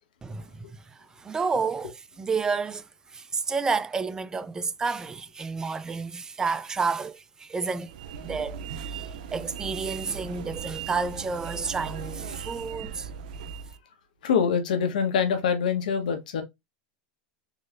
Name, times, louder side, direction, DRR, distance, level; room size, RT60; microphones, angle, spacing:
voice 1, 0.2-7.9 8.2-13.1, right 4 dB, 15° right, 0.3 m, -30 dB
sound 1, 7.9-13.8, right 7 dB, 80° right, 0.5 m, -38 dB
voice 2, 14.2-16.4, left 6 dB, 90° left, 1.2 m, -24 dB
4.0 x 3.0 x 2.5 m
supercardioid pair, 125°, 4 cm